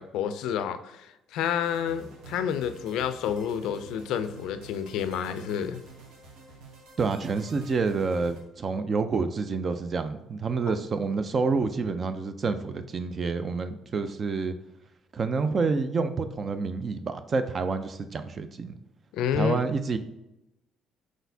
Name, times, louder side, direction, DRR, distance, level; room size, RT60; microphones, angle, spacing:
voice 1, 0.0-5.8 19.1-19.6, left 8 dB, 80° left, 11 dB, 0.4 m, -29 dB
sound 1, 1.6-8.4, right 3 dB, 80° right, 1.0 m, -49 dB
voice 2, 7.0-14.5 15.1-18.7 19.3-20.0, right 4 dB, 35° right, 10 dB, 0.4 m, -28 dB
4.8 x 4.1 x 2.7 m, 0.91 s
cardioid pair, 120°, 0 cm